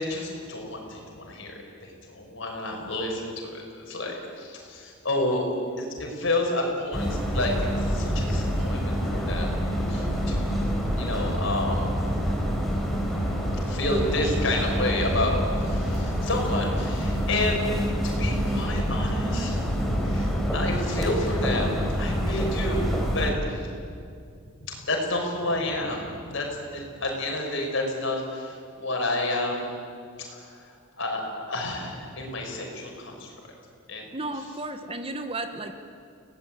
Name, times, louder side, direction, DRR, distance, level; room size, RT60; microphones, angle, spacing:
voice 1, 0.0-5.4 5.8-9.5 9.9-10.6 11.0-11.9 13.7-17.6 18.0-19.6 20.0-23.3 24.7-26.5 26.7-29.8 30.2-30.4 31.0-33.3 33.9-34.0, left 2 dB, 60° left, 1 dB, 6.3 m, -30 dB
sound 1, 6.9-23.3, equal, ahead, 4.4 m, -26 dB
voice 2, 34.1-35.7, right 2 dB, 25° right, 7 dB, 1.4 m, -33 dB
29.5 x 18.5 x 9.4 m, 2.3 s
head